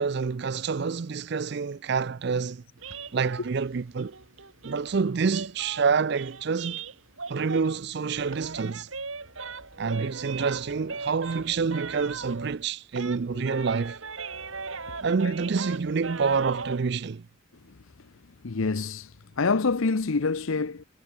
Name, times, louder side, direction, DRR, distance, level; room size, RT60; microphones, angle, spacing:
voice 1, 0.0-2.6 3.1-4.1 4.6-6.8 7.3-8.9 9.8-14.0 15.0-17.2, right 5 dB, 50° right, 0.4 m, -27 dB
sound 1, 2.8-7.9 8.1-12.6 12.9-16.8, right 4 dB, 70° right, 4.2 m, -39 dB
voice 2, 18.4-20.8, left 4 dB, 75° left, 0.7 m, -27 dB
head